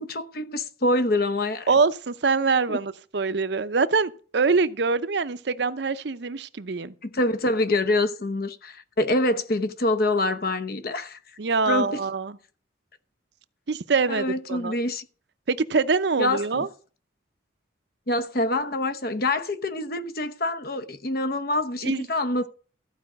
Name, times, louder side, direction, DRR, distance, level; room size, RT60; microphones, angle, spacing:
voice 1, 0.0-1.7 2.7-2.8 7.0-11.2 11.7-12.0 14.1-15.0 16.2-16.7 18.1-22.5, left 2 dB, 50° left, 0.9 m, -26 dB
voice 2, 1.7-6.9 11.4-12.4 13.7-14.7 15.5-16.7 21.8-22.1, right 4 dB, 65° right, 0.6 m, -24 dB
14.5 x 5.0 x 7.7 m
head